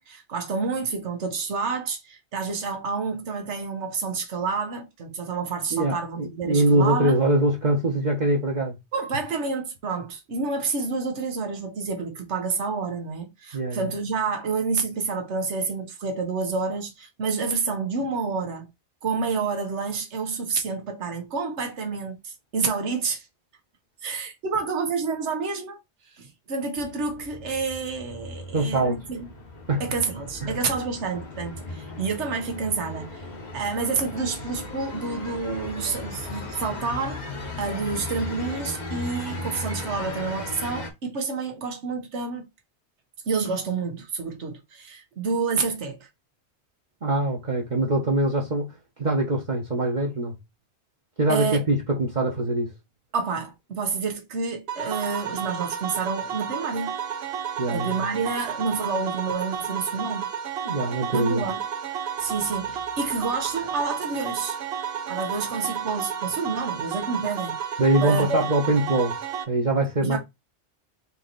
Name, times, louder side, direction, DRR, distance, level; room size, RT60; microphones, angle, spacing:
voice 1, 0.0-7.2 8.9-18.7 19.0-23.3 24.0-25.8 26.1-29.3 29.8-33.2 33.5-37.2 37.6-42.5 43.3-46.1 51.3-51.6 53.1-56.9 57.7-60.3 61.1-61.6 62.2-64.6 65.1-68.4 70.0-70.2, right 4 dB, 85° right, 1.3 m, -29 dB
voice 2, 5.7-8.8 13.5-13.9 28.5-29.0 29.7-29.8 30.4-30.6 47.0-48.7 49.0-50.3 51.2-52.7 57.6-58.1 60.6-61.4 67.8-69.1 69.5-70.2, right 1 dB, 45° right, 1.1 m, -23 dB
sound 1, 26.8-40.9, left 2 dB, 40° left, 1.0 m, -37 dB
sound 2, 54.7-69.4, right 8 dB, 65° right, 0.9 m, -32 dB
4.4 x 2.9 x 3.9 m
omnidirectional pair, 1.1 m